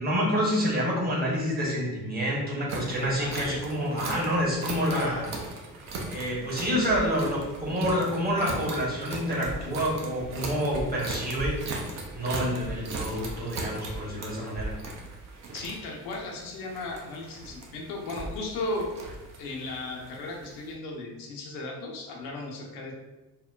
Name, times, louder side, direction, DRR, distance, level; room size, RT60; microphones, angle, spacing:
voice 1, 0.0-5.3 6.1-11.6 12.1-14.8, equal, 20° right, -5 dB, 1.0 m, -28 dB
sound 1, 2.7-20.7, right 2 dB, 35° right, 0.5 m, -38 dB
voice 2, 3.2-3.6 15.5-18.9 19.4-22.9, left 2 dB, 65° left, -1 dB, 0.7 m, -36 dB
2.9 x 2.1 x 2.3 m, 1.1 s
figure-of-eight pair, 55°, 48 cm